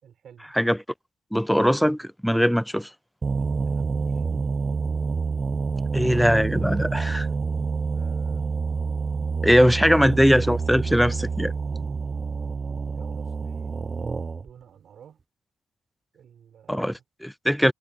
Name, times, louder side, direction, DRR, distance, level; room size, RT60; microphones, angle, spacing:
voice 1, 0.0-0.5 3.3-4.2 7.6-8.5 12.9-13.8 14.4-15.2 16.1-17.0, right 8 dB, 60° right, 5.6 m, -50 dB
voice 2, 1.3-2.9 5.9-7.3 9.4-11.5 16.7-17.7, equal, ahead, 0.3 m, -21 dB
sound 1, 3.2-14.5, right 4 dB, 35° right, 0.7 m, -27 dB
cardioid pair, 90°, 0 cm